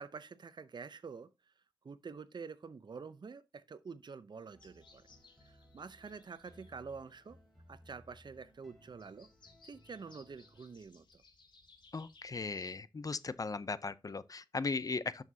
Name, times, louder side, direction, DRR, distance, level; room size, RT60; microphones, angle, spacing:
voice 1, 0.0-1.5 1.8-5.0 5.4-7.4 7.7-9.3 9.6-11.2, right 5 dB, 65° right, 0.7 m, -48 dB
sound 1, 4.5-10.8, equal, ahead, 3.3 m, -63 dB
sound 2, 4.6-12.7, left 3 dB, 75° left, 2.3 m, -64 dB
voice 2, 11.9-15.2, left 4 dB, 45° left, 0.6 m, -37 dB
11.0 x 6.5 x 2.8 m
wide cardioid pair, 90°, 8 cm